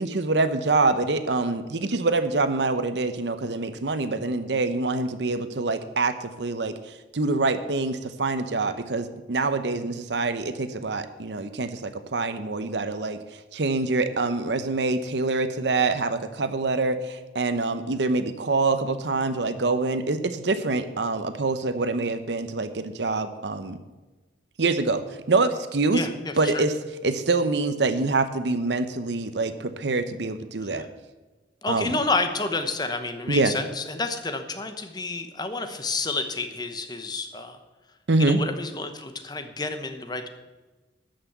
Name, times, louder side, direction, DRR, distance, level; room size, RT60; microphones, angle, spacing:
voice 1, 0.0-13.2 13.5-23.8 24.6-25.0 25.3-26.1 26.4-26.7 27.0-30.9 31.7-32.0 33.3-33.5 38.1-38.4, right 3 dB, 75° right, 11 dB, 0.8 m, -25 dB
voice 2, 25.9-26.6 30.6-30.9 31.6-37.6 38.2-40.3, left 3 dB, 25° left, 7 dB, 0.9 m, -30 dB
13.0 x 6.0 x 8.1 m, 1.2 s
head